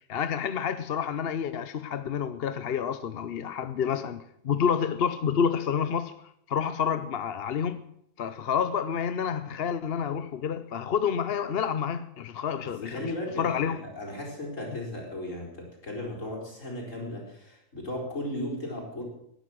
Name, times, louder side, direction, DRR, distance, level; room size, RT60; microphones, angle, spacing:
voice 1, 0.1-6.1 6.5-7.8 8.2-13.1 13.4-13.8, left 7 dB, 55° left, 0.9 m, -29 dB
voice 2, 12.6-19.0, left 1 dB, 70° left, 5.1 m, -36 dB
19.0 x 10.5 x 6.3 m
omnidirectional pair, 1.4 m